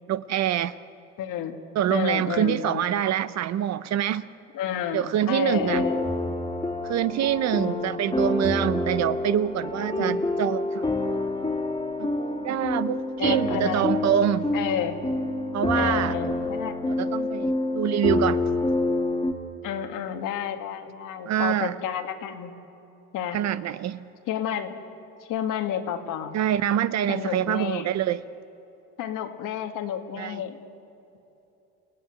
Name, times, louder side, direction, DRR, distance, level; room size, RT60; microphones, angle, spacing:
voice 1, 0.1-0.8 1.7-4.3 4.9-5.9 6.8-11.2 12.0-14.5 15.5-16.2 16.9-18.4 21.2-21.7 23.3-24.0 26.3-28.2 30.2-30.4, right 11 dB, 50° right, 15 dB, 0.8 m, -25 dB
voice 2, 1.2-1.6 1.9-2.8 4.5-6.1 7.5-8.0 10.0-10.3 13.2-13.9 14.5-15.0 15.7-16.8 19.6-22.5 23.1-23.4 24.3-24.8 25.3-26.4 27.1-27.9 29.0-30.6, left 9 dB, 65° left, 6 dB, 2.1 m, -30 dB
sound 1, 5.5-19.3, left 2 dB, 15° left, 2.6 m, -27 dB
29.5 x 17.0 x 9.8 m, 3.0 s
supercardioid pair, 95°, 35 cm